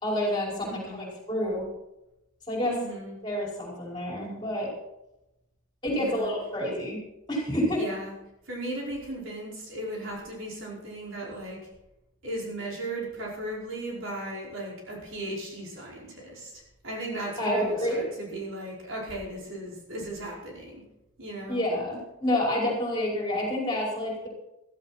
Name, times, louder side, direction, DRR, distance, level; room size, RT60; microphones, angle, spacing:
voice 1, 0.0-1.7 2.5-2.7 3.2-4.7 5.8-7.0 7.3-7.8 17.4-18.1 21.5-24.3, left 1 dB, 20° left, -2 dB, 5.3 m, -28 dB
voice 2, 0.6-1.1 2.6-3.1 5.9-6.3 7.7-8.1 8.5-11.6 12.2-20.8 21.2-21.6, right 1 dB, 65° right, -3 dB, 5.2 m, -36 dB
15.5 x 14.5 x 4.3 m, 0.89 s
head